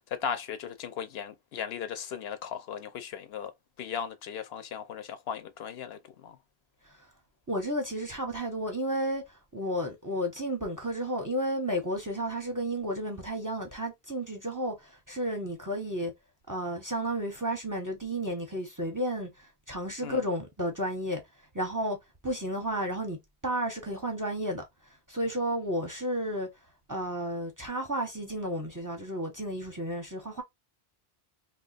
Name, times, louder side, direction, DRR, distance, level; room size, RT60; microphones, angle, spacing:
voice 1, 0.1-3.5 3.8-6.4 20.0-20.2, left 8 dB, 75° left, 0.8 m, -37 dB
voice 2, 7.5-9.2 9.5-16.1 16.5-21.2 21.5-22.0 22.2-23.2 23.4-24.6 25.1-26.5 26.9-30.4, equal, 20° right, 0.7 m, -32 dB
2.8 x 2.3 x 3.9 m
omnidirectional pair, 1.1 m